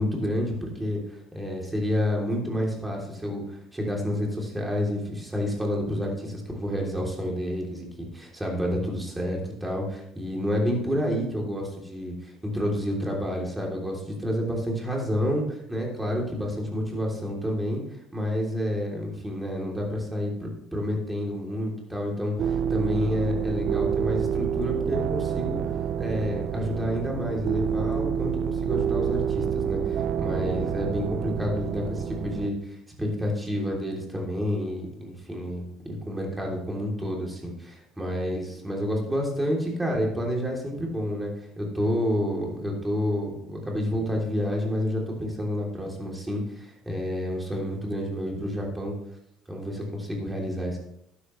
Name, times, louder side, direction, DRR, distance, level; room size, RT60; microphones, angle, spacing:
voice 1, 0.0-3.4 3.7-17.8 18.1-25.6 26.0-48.9 49.5-50.8, equal, 10° right, -1 dB, 3.2 m, -29 dB
sound 1, 22.4-32.5, right 8 dB, 55° right, 0.5 m, -28 dB
12.0 x 10.5 x 3.2 m, 0.77 s
cardioid pair, 125°, 0 cm